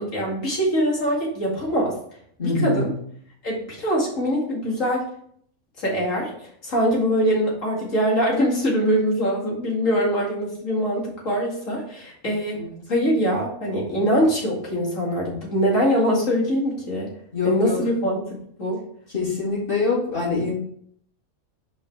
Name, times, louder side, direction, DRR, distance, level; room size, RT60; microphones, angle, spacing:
voice 1, 0.0-2.0 2.4-2.9 3.4-5.1 5.8-6.3 6.6-12.6 12.9-17.1 17.4-18.8, equal, 65° left, -3 dB, 2.7 m, -23 dB
voice 2, 2.4-2.9 12.5-12.8 17.3-17.8 19.1-20.5, left 4 dB, 40° left, -6 dB, 3.5 m, -24 dB
5.6 x 5.2 x 4.7 m, 0.63 s
omnidirectional pair, 1.5 m